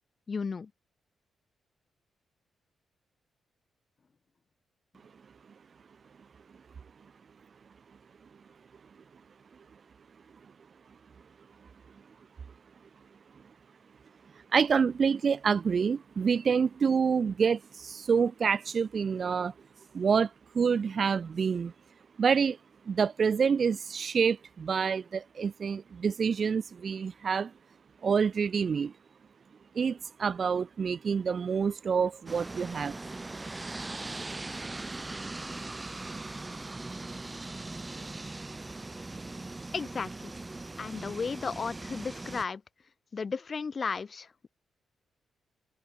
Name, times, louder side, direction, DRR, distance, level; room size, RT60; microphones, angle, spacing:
voice 1, 0.3-0.7 39.7-40.3 40.8-42.6 43.1-44.5, left 5 dB, 40° left, 2.0 m, -34 dB
voice 2, 14.5-19.5 19.9-21.7 22.2-22.6 22.9-27.5 28.0-28.9 29.7-33.0, right 6 dB, 50° right, 0.6 m, -27 dB
sound 1, 32.3-42.4, right 2 dB, 20° right, 2.7 m, -40 dB
cardioid pair, 95°, 0 cm